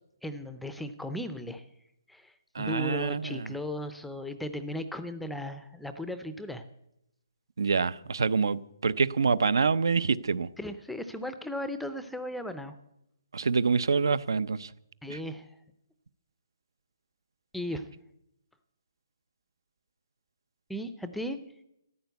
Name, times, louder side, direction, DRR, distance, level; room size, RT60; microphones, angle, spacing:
voice 1, 0.2-1.6 2.1-6.6 10.6-12.7 15.0-15.5 17.5-17.9 20.7-21.4, left 1 dB, ahead, 0.5 m, -36 dB
voice 2, 2.5-3.5 7.6-10.5 13.3-14.7 15.1-15.2, right 5 dB, 80° right, 0.7 m, -26 dB
14.0 x 10.5 x 8.1 m
hypercardioid pair, 170°, 2 cm